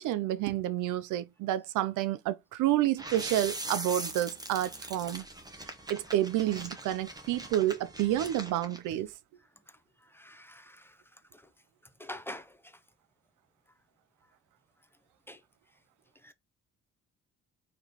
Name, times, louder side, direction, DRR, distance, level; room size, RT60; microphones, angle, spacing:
voice 1, 0.0-5.2 5.9-9.1, right 13 dB, 85° right, 0.5 m, -29 dB
sound 1, 3.0-8.8, right 2 dB, 15° right, 0.9 m, -41 dB
voice 2, 10.2-10.6 12.0-12.4 15.3-15.4 16.2-16.3, left 1 dB, 10° left, 0.5 m, -43 dB
4.1 x 3.0 x 2.8 m
cardioid pair, 90°, 30 cm